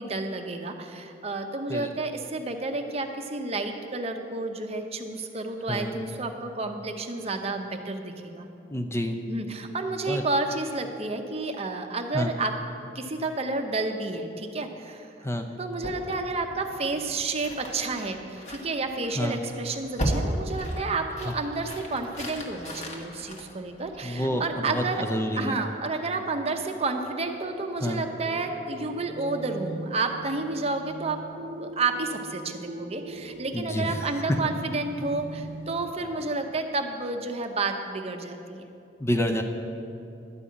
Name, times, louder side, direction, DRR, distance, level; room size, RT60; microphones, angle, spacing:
voice 1, 0.0-8.5 9.3-12.6 12.9-15.1 15.6-25.1 25.4-31.2 31.6-38.7, right 3 dB, 35° right, 5 dB, 0.7 m, -30 dB
voice 2, 8.7-9.2 10.1-10.2 12.1-12.3 15.2-15.5 19.2-19.4 24.0-25.6 27.8-28.0 33.5-34.0 39.0-39.4, equal, 15° left, 5 dB, 0.5 m, -28 dB
sound 1, 15.8-24.3, equal, 40° left, 1.4 m, -35 dB
sound 2, 24.1-35.9, right 2 dB, 90° right, 0.6 m, -42 dB
11.5 x 5.5 x 8.5 m, 2.6 s
head